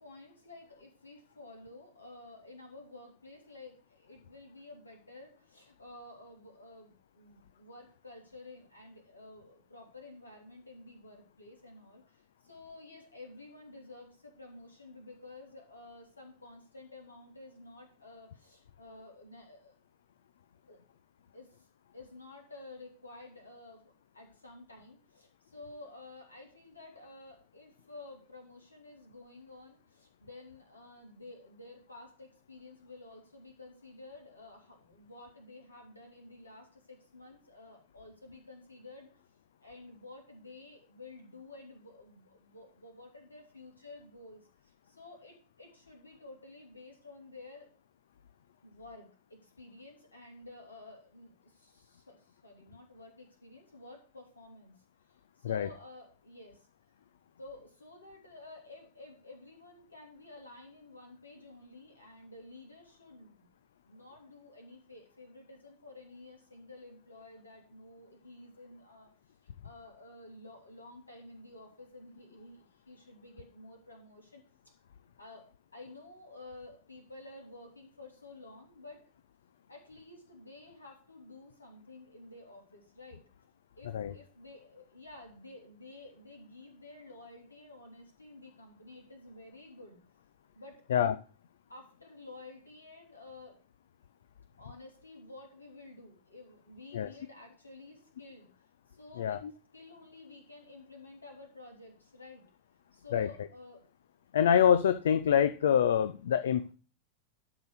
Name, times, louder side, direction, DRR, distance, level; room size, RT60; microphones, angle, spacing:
voice 1, 0.0-19.7 20.7-20.8 21.3-21.7 21.9-39.1 39.6-47.7 48.6-56.7 57.4-63.5 63.9-69.1 69.4-74.8 75.2-79.0 79.7-83.2 83.8-90.0 90.5-90.9 91.7-93.6 94.6-98.5 98.9-99.4 99.7-102.4 102.9-103.8, left 2 dB, 80° left, 2 dB, 2.7 m, -52 dB
voice 2, 104.3-106.7, left 8 dB, 60° left, 12 dB, 0.5 m, -25 dB
12.0 x 4.0 x 6.4 m, 0.37 s
figure-of-eight pair, 90°, 0 cm